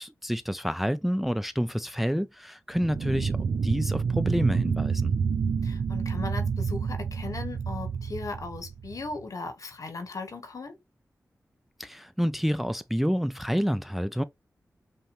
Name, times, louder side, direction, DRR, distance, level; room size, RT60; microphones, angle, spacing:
voice 1, 0.0-3.4 3.6-5.1 11.8-14.2, equal, 5° right, 0.4 m, -28 dB
sound 1, 2.8-9.2, right 5 dB, 70° right, 0.4 m, -28 dB
voice 2, 5.6-10.7, left 3 dB, 70° left, 1.1 m, -37 dB
5.5 x 2.1 x 3.1 m
cardioid pair, 50°, 6 cm